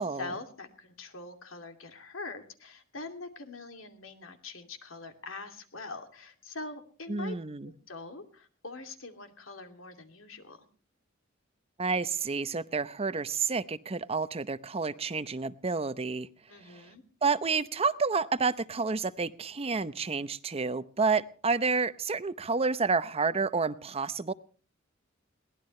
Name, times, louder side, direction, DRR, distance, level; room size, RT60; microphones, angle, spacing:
voice 1, 0.0-7.3 7.6-10.7 16.5-17.0, left 3 dB, 80° left, 6 dB, 2.7 m, -43 dB
voice 2, 7.1-7.7 11.8-16.3 16.7-16.8 17.2-24.3, right 4 dB, 30° right, 14 dB, 0.7 m, -29 dB
22.5 x 18.0 x 3.2 m, 0.39 s
head